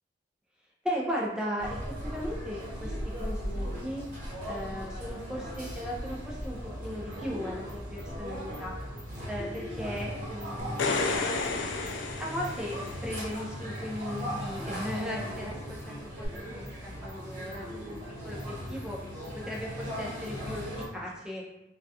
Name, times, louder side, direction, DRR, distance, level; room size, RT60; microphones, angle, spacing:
voice 1, 0.8-4.0 4.5-8.8 9.3-11.0 12.2-12.8 13.0-18.0 18.2-19.0 19.4-20.7 20.9-21.4, equal, 5° right, -4 dB, 0.3 m, -37 dB
sound 1, 1.6-20.9, equal, 50° right, 0.9 m, -38 dB
sound 2, 10.6-13.2 16.2-16.3, left 4 dB, 85° left, 0.3 m, -31 dB
2.2 x 2.1 x 2.7 m, 0.96 s
head